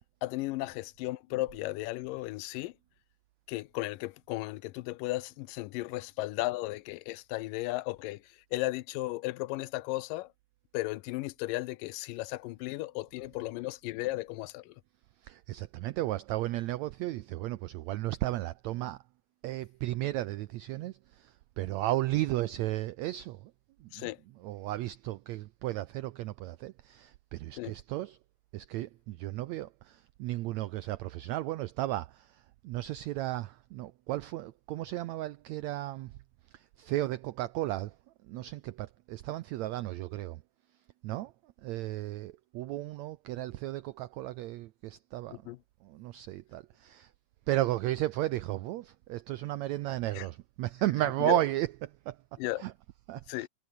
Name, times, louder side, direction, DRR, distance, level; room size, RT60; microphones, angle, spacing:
voice 1, 0.2-2.7 3.5-8.2 8.5-10.3 10.7-14.8 23.9-24.2 27.6-27.7 45.3-45.6 50.1-50.3 51.2-51.4 52.4-52.7 53.3-53.5, left 19 dB, 80° left, 2.3 m, -35 dB
voice 2, 15.2-19.0 19.4-23.5 23.8-24.1 24.4-28.2 28.5-36.2 36.5-37.9 38.3-40.4 41.0-41.3 41.6-45.5 45.8-47.1 47.5-51.7 52.1-52.2 52.6-52.7 53.1-53.5, right 16 dB, 85° right, 1.6 m, -34 dB
omnidirectional pair, 3.9 m